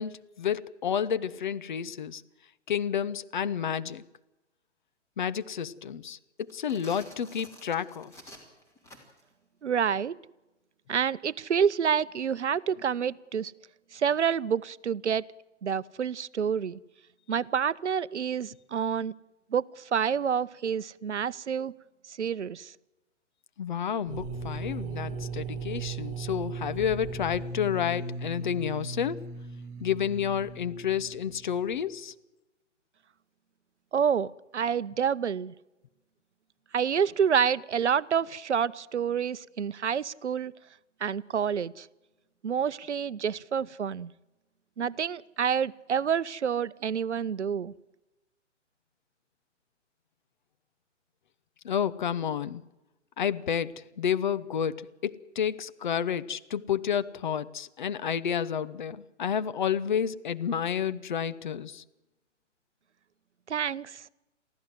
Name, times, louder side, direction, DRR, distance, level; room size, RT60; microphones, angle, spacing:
voice 1, 0.0-2.2 2.7-4.0 5.2-8.2 23.6-29.3 29.8-32.1 51.6-52.6 53.2-61.8, left 8 dB, 40° left, 0.8 m, -30 dB
sound 1, 6.4-9.3, equal, 5° left, 3.2 m, -50 dB
voice 2, 9.6-10.2 10.9-13.5 13.9-15.3 15.6-16.8 17.3-19.1 19.5-21.7 22.1-22.7 33.9-35.5 36.7-40.5 41.0-41.9 42.4-44.1 44.8-47.7 63.5-64.0, right 7 dB, 65° right, 0.7 m, -28 dB
sound 2, 24.1-31.8, right 4 dB, 15° right, 1.3 m, -38 dB
23.5 x 15.0 x 7.6 m
figure-of-eight pair, 130°, 37 cm